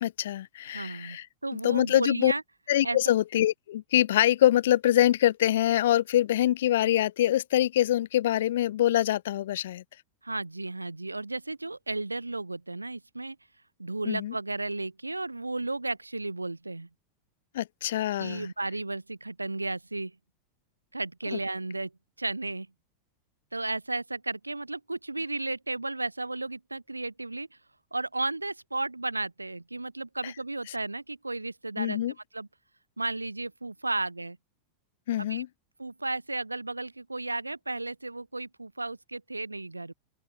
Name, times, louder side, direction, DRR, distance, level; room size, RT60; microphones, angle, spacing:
voice 1, 0.0-1.3 1.5-2.3 2.7-9.8 14.0-14.3 17.5-18.5 31.8-32.1 35.1-35.5, left 13 dB, 60° left, 1.1 m, -24 dB
voice 2, 0.7-2.4 2.8-3.0 10.2-13.4 13.8-16.9 18.2-20.2 20.9-21.9 22.2-22.7 23.5-27.5 27.9-32.0 32.3-32.5 33.0-34.4 35.2-35.4 35.8-39.9, right 2 dB, 85° right, 7.1 m, -34 dB
open air
figure-of-eight pair, 90°, 0 cm